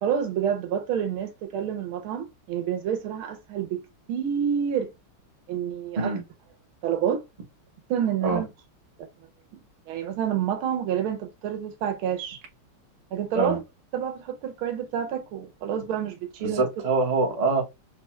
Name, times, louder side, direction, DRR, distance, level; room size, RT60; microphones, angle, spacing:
voice 1, 0.0-3.8 4.1-4.9 5.5-6.1 6.8-7.2 7.9-8.5 9.5-9.6 9.9-12.4 13.1-13.6 13.9-16.7, right 9 dB, 80° right, 1.6 m, -28 dB
voice 2, 16.4-17.6, right 3 dB, 35° right, 0.6 m, -24 dB
4.9 x 2.3 x 3.0 m
omnidirectional pair, 2.3 m